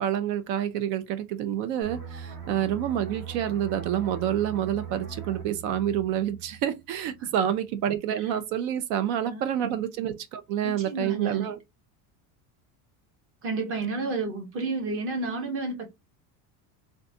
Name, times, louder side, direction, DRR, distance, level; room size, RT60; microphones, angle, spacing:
voice 1, 0.0-11.6, right 10 dB, 70° right, 0.7 m, -28 dB
sound 1, 1.8-7.2 7.5-7.8, right 6 dB, 50° right, 1.3 m, -40 dB
voice 2, 9.2-9.7 10.6-11.5 13.4-15.9, right 3 dB, 30° right, 0.8 m, -31 dB
3.8 x 2.3 x 2.7 m
cardioid pair, 170°, 43 cm